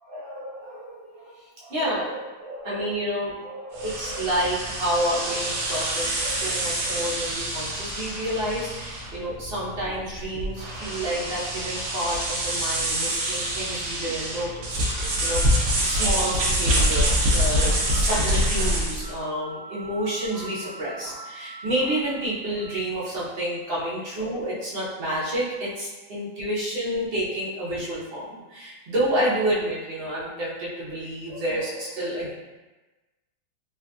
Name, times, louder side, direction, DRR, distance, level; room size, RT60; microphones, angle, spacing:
voice 1, 0.1-15.5 15.8-32.3, right 1 dB, 45° right, -8 dB, 0.9 m, -29 dB
sound 1, 3.7-19.1, equal, 80° right, 0.6 m, -26 dB
sound 2, 14.8-23.8, equal, 20° left, 1.0 m, -42 dB
3.3 x 2.5 x 2.3 m, 1.2 s
omnidirectional pair, 1.8 m